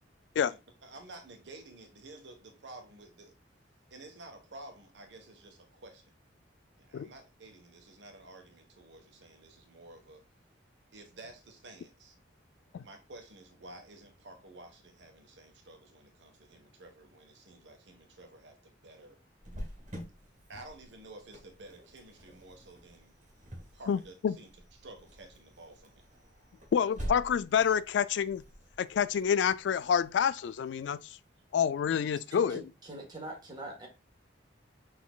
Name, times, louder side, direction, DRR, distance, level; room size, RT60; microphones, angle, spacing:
voice 1, 0.3-3.3 3.9-6.1 6.8-10.2 10.9-12.1 12.8-19.2 20.5-23.1 23.7-24.5 24.8-26.1, right 2 dB, 75° right, 1.2 m, -52 dB
Cricket, 19.4-30.9, equal, 40° right, 1.8 m, -47 dB
voice 2, 23.9-24.3 26.7-28.4 28.8-31.0 31.5-32.6, left 7 dB, 75° left, 0.3 m, -28 dB
voice 3, 32.5-33.9, right 1 dB, 25° right, 1.5 m, -43 dB
6.1 x 3.8 x 2.3 m
head